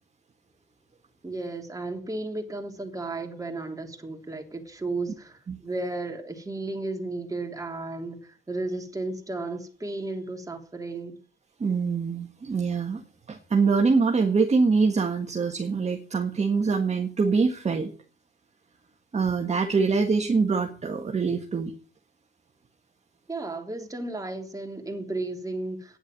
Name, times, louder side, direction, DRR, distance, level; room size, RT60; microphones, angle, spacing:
voice 1, 1.2-11.2 23.3-26.0, right 2 dB, 15° right, 3.3 m, -34 dB
voice 2, 11.6-13.0 13.3-17.9 19.1-21.7, right 4 dB, 35° right, 1.7 m, -24 dB
10.0 x 7.9 x 9.1 m
cardioid pair, 90°, 20 cm